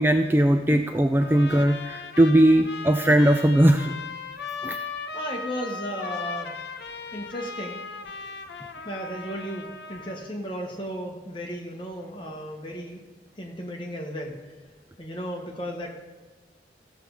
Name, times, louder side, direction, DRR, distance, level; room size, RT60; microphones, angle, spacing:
voice 1, 0.0-4.0 4.6-4.8, right 1 dB, 10° right, 5 dB, 0.3 m, -19 dB
Trumpet, 1.2-10.3, left 4 dB, 75° left, 0.8 m, -37 dB
voice 2, 5.1-6.6 7.1-7.8 8.8-13.0 13.4-14.4 15.0-15.9, equal, 30° left, 0 dB, 1.4 m, -34 dB
15.5 x 6.6 x 4.8 m, 1.3 s
head